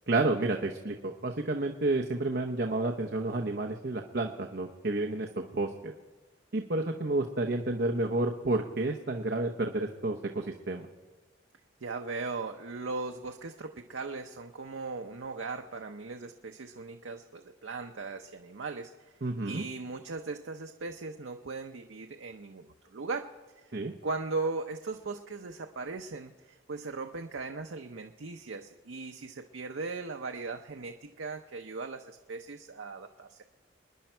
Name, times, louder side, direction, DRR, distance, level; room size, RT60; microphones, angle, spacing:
voice 1, 0.1-5.9 6.5-10.9 19.2-19.6 23.7-23.9, right 2 dB, 55° right, 2 dB, 0.9 m, -30 dB
voice 2, 11.8-18.9 19.4-23.3 23.7-23.8 24.0-33.4, right 3 dB, 85° right, 5 dB, 0.7 m, -38 dB
27.5 x 10.5 x 4.5 m, 1.3 s
head